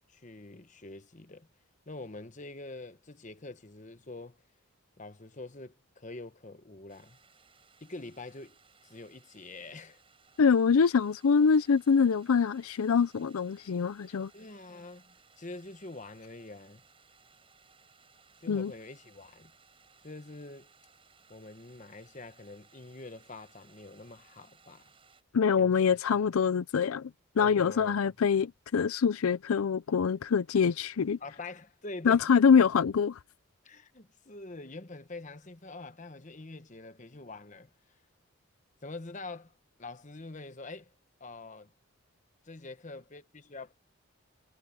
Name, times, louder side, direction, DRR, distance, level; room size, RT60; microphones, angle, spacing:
voice 1, 0.1-1.5 1.9-4.4 5.0-7.2 7.8-10.0 14.3-16.8 18.4-19.5 20.0-20.7 21.3-24.9 25.6-26.2 27.4-28.1 31.2-32.3 33.6-37.7 38.8-39.5 39.8-40.9 41.2-41.7 42.4-43.7, left 2 dB, 35° left, 1.1 m, -45 dB
sound 1, 6.9-25.2, right 5 dB, 25° right, 7.3 m, -62 dB
voice 2, 10.4-14.3 18.5-18.7 25.3-27.1 27.4-31.2 32.0-33.2, left 6 dB, 80° left, 0.5 m, -25 dB
head